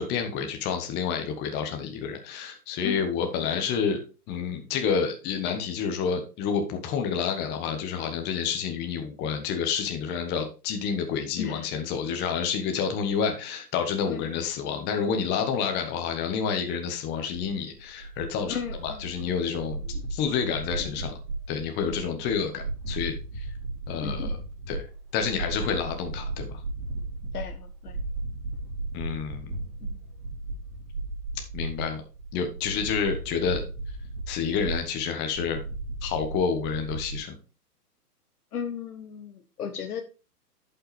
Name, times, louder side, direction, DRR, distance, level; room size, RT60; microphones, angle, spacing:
voice 1, 0.0-4.0 4.3-19.8 20.1-21.1 21.5-23.4 23.9-24.4 24.7-24.8 25.1-26.6 28.9-29.5 31.5-32.0 32.3-33.6 34.3-35.6 36.0-37.3, left 6 dB, 20° left, 5 dB, 1.2 m, -29 dB
sound 1, 17.3-37.2, right 2 dB, 30° right, 3.7 m, -35 dB
voice 2, 18.5-19.3 20.8-20.9 21.9-22.2 24.0-24.3 27.3-27.9 29.8-30.0 38.5-40.0, left 7 dB, 70° left, 6 dB, 1.2 m, -35 dB
11.0 x 5.7 x 3.3 m, 0.32 s
hypercardioid pair, 135°, 47 cm